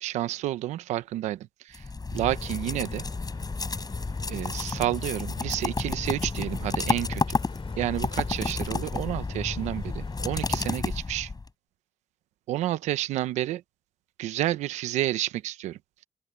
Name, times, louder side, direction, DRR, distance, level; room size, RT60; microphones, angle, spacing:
voice 1, 0.0-1.8 2.1-3.0 4.3-7.2 7.8-11.3 12.5-13.6 14.2-15.8, right 14 dB, 85° right, 1.1 m, -30 dB
sound 1, 1.7-11.5, left 3 dB, 35° left, 7.8 m, -31 dB
sound 2, 2.3-10.8, left 6 dB, 55° left, 7.9 m, -48 dB
open air
supercardioid pair, 50°, 12 cm